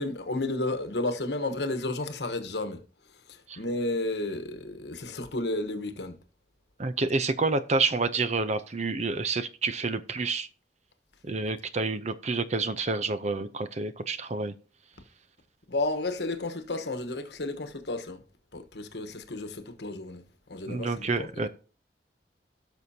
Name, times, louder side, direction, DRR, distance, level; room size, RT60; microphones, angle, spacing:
voice 1, 0.0-2.8 3.6-6.1 15.7-18.2 18.5-20.2 20.5-21.5, left 2 dB, 70° left, 1.2 m, -32 dB
voice 2, 6.8-10.5 11.2-14.5 20.7-21.5, right 3 dB, 40° right, 0.7 m, -28 dB
17.5 x 6.2 x 2.8 m
head